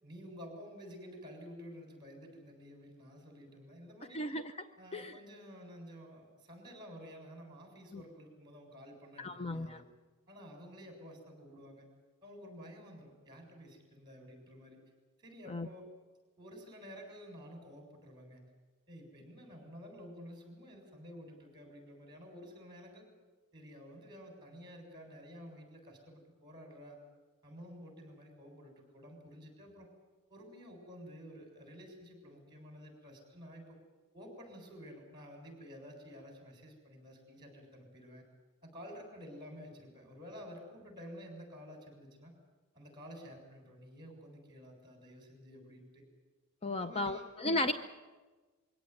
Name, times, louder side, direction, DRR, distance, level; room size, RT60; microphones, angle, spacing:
voice 1, 0.0-4.2 4.8-9.8 10.3-11.9 12.2-14.8 15.2-15.9 16.4-18.5 18.9-23.0 23.5-27.0 27.4-29.9 30.3-33.8 34.1-38.2 38.6-42.3 42.7-46.0 46.7-47.7, equal, 20° right, 3 dB, 6.9 m, -51 dB
voice 2, 4.1-4.5 4.9-5.1 7.9-8.0 9.2-9.8 15.5-15.7 46.6-47.7, left 2 dB, 30° left, 9 dB, 0.7 m, -34 dB
23.0 x 17.0 x 9.6 m, 1.3 s
head